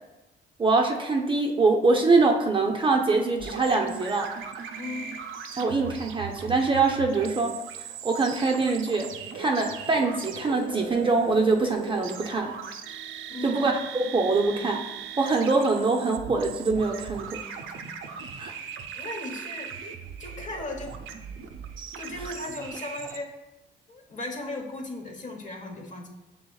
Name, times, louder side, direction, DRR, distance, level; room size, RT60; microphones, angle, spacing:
voice 1, 0.6-4.3 5.5-7.6 8.0-9.1 9.3-12.5 13.4-14.9 15.2-17.4 18.4-18.5, right 3 dB, 25° right, 1 dB, 0.5 m, -24 dB
sound 1, 3.4-23.2, right 7 dB, 80° right, 0.5 m, -39 dB
voice 2, 4.8-5.1 13.3-13.7 18.5-18.6 18.9-19.7 20.2-21.0 22.0-23.4 23.9-26.1, left 2 dB, 40° left, 2 dB, 0.9 m, -37 dB
6.6 x 3.5 x 2.3 m, 1.0 s
cardioid pair, 90°, 20 cm